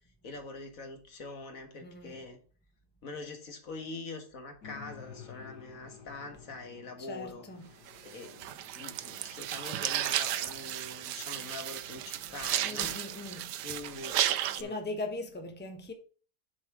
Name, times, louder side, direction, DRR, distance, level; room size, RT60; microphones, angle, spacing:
voice 1, 0.2-2.4 3.0-7.4 7.7-8.4 8.7-13.0 13.6-14.2 14.6-14.8, left 3 dB, 55° left, 1.9 m, -44 dB
voice 2, 1.8-2.2 7.0-7.6 12.6-13.5 14.6-15.9, left 2 dB, 5° left, 1.0 m, -39 dB
sound 1, 4.6-10.9, left 7 dB, 80° left, 2.3 m, -53 dB
sound 2, 7.9-14.6, right 12 dB, 85° right, 1.2 m, -34 dB
7.1 x 5.6 x 4.8 m
omnidirectional pair, 1.8 m